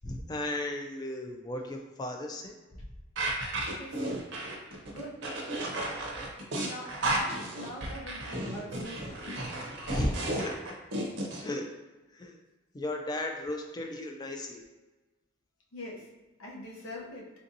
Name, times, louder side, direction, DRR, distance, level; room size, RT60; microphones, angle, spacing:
voice 1, 0.0-2.6 9.9-10.5 11.4-11.7 12.1-12.4 12.7-14.6, left 1 dB, 20° left, 3 dB, 0.3 m, -35 dB
sound 1, 3.2-11.4, right 1 dB, 60° right, 0.6 m, -33 dB
voice 2, 3.7-4.2 4.9-5.2 6.6-9.2 15.7-16.1 16.4-17.3, left 1 dB, 85° left, -3 dB, 0.7 m, -43 dB
3.4 x 2.6 x 2.6 m, 1.2 s
head